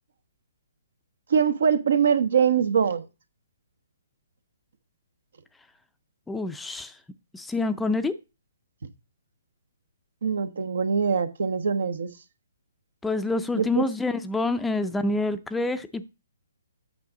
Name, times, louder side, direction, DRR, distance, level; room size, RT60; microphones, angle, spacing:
voice 1, 1.3-3.0 10.2-12.1 13.5-13.8, right 7 dB, 70° right, 1.0 m, -23 dB
voice 2, 6.3-7.0 7.3-8.1 13.0-16.1, left 2 dB, 5° left, 0.5 m, -27 dB
8.4 x 5.9 x 3.9 m
hypercardioid pair, 140°, 0 cm